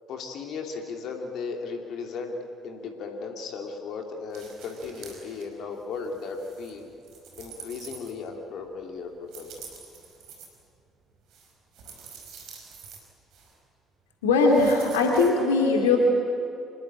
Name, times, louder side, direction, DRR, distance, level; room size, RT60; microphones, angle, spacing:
voice 1, 0.1-2.3 2.6-6.9 7.4-9.5, left 4 dB, 55° left, 3 dB, 2.9 m, -36 dB
sound 1, 4.3-5.4 5.8-8.5 9.3-10.5 11.3-13.0 13.3-13.5 14.5-15.3, right 6 dB, 55° right, 5.1 m, -46 dB
voice 2, 14.2-16.0, left 3 dB, 70° left, 1 dB, 2.6 m, -20 dB
26.0 x 21.5 x 8.8 m, 2.7 s
figure-of-eight pair, 50°, 0 cm